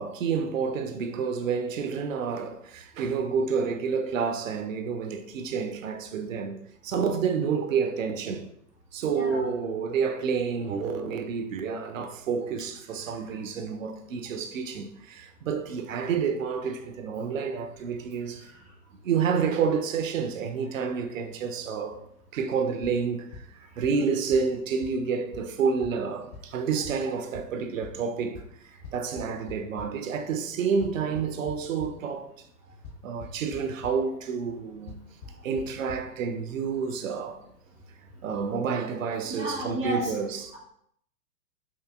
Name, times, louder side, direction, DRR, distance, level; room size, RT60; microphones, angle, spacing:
voice 1, 0.0-8.5 8.9-18.5 19.0-22.0 22.3-32.3 33.0-35.0 35.4-37.4 38.2-40.5, right 6 dB, 55° right, 0.5 m, -29 dB
voice 2, 9.1-9.4 39.3-40.1, equal, 5° left, 0.3 m, -31 dB
sound 1, 22.8-22.9 23.3-23.4 23.8-23.9 24.3-24.4 24.8-24.9 25.3-25.4 25.8-25.9 26.3-26.4 26.8-26.9 27.3-27.4 27.8-27.9 28.3-28.4 28.8-29.8 30.8-31.9 32.8-32.9 33.2-33.6 33.8-33.9 34.9-35.0 35.2-35.3 35.6-35.7 35.9-36.0, left 5 dB, 60° left, 1.1 m, -41 dB
5.6 x 2.6 x 2.4 m
figure-of-eight pair, 110°, 48 cm